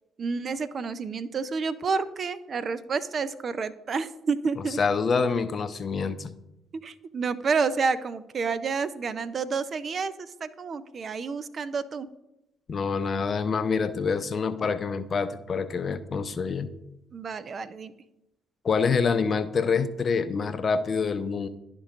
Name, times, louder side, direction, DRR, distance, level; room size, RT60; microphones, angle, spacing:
voice 1, 0.2-4.8 6.8-12.1 17.1-17.9, right 5 dB, 50° right, 13 dB, 0.4 m, -29 dB
voice 2, 4.8-6.3 12.7-16.7 18.6-21.5, left 5 dB, 45° left, 11 dB, 0.5 m, -26 dB
11.5 x 4.5 x 2.5 m, 0.92 s
hypercardioid pair, 45°, 0 cm